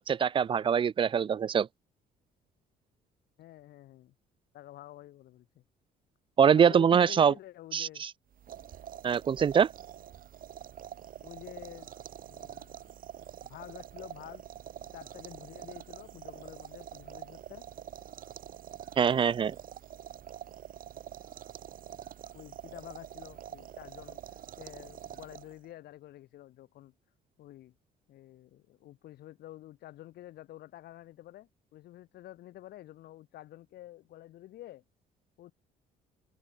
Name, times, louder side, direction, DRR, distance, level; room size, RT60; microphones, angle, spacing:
voice 1, 0.0-1.7 6.4-7.3 7.7-8.1 9.0-9.7 19.0-19.6, right 7 dB, 30° right, 0.4 m, -24 dB
voice 2, 3.4-4.1 4.5-5.5 6.5-8.0 11.2-11.9 12.3-12.9 13.5-14.4 14.8-17.6 22.3-26.9 27.4-27.7 28.1-34.8 35.4-35.5, left 14 dB, 70° left, 4.5 m, -49 dB
sound 1, 8.3-25.7, right 10 dB, 55° right, 3.5 m, -46 dB
cardioid pair, 110°, 17 cm